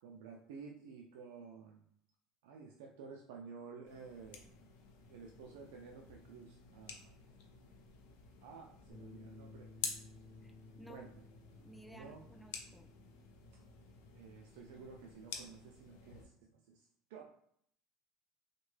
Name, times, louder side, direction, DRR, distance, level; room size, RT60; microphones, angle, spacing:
voice 1, 0.0-1.8 2.4-4.4 5.1-7.1 8.4-9.7 10.8-11.3 11.9-12.2 13.5-13.6 14.1-17.4, right 5 dB, 85° right, 1 dB, 0.3 m, -52 dB
sound 1, 3.9-16.3, left 6 dB, 80° left, 0.6 m, -50 dB
Bass guitar, 8.9-15.1, left 3 dB, 20° right, 1.2 m, -58 dB
voice 2, 10.4-11.0 11.6-12.9, equal, 5° left, 6 dB, 0.3 m, -57 dB
3.5 x 2.2 x 3.2 m, 0.69 s
supercardioid pair, 115°, 0 cm